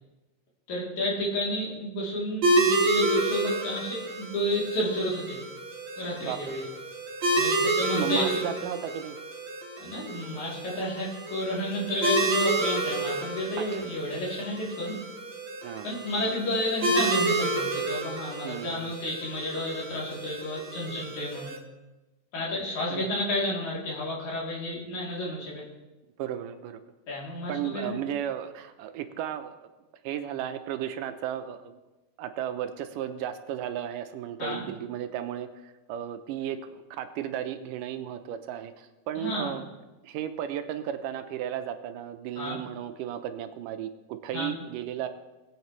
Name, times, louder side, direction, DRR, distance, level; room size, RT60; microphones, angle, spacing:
voice 1, 0.7-5.4 6.0-6.6 7.4-8.3 9.8-15.0 15.8-21.6 22.3-25.7 27.1-28.0 34.4-34.6 39.2-39.5 42.4-42.6 44.3-44.5, left 1 dB, 65° left, -5 dB, 4.2 m, -31 dB
sound 1, 2.4-21.6, right 2 dB, 50° right, 2.0 m, -30 dB
voice 2, 6.2-6.6 8.0-9.2 15.6-15.9 18.4-18.9 22.9-23.1 26.2-26.8 27.5-29.7 30.0-31.8 32.2-39.7 40.0-45.1, right 10 dB, 90° right, 9 dB, 2.3 m, -34 dB
20.5 x 8.2 x 3.1 m, 1.1 s
omnidirectional pair, 3.8 m